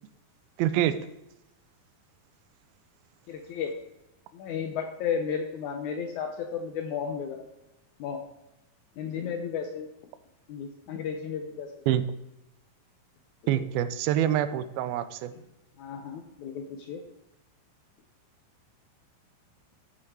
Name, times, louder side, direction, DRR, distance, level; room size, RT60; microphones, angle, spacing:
voice 1, 0.6-1.0 11.9-12.0 13.5-15.3, right 11 dB, 85° right, 12 dB, 2.5 m, -26 dB
voice 2, 3.3-3.7 4.3-7.4 8.0-8.2 9.0-9.9 10.5-11.7 13.5-13.6 15.8-17.0, left 7 dB, 75° left, 5 dB, 1.8 m, -33 dB
12.0 x 6.1 x 4.7 m, 0.91 s
omnidirectional pair, 4.2 m